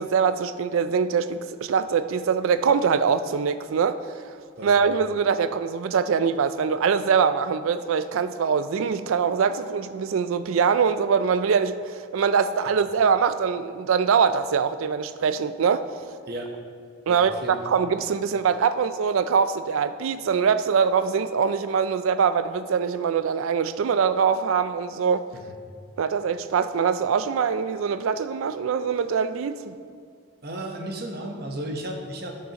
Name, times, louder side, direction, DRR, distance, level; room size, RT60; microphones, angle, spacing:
voice 1, 0.0-4.0 4.6-15.9 17.1-25.3 26.0-29.7, right 6 dB, 75° right, 12 dB, 0.4 m, -23 dB
voice 2, 17.1-17.6 30.4-32.5, right 1 dB, 45° right, 2 dB, 0.9 m, -34 dB
12.5 x 6.5 x 2.9 m, 2.2 s
head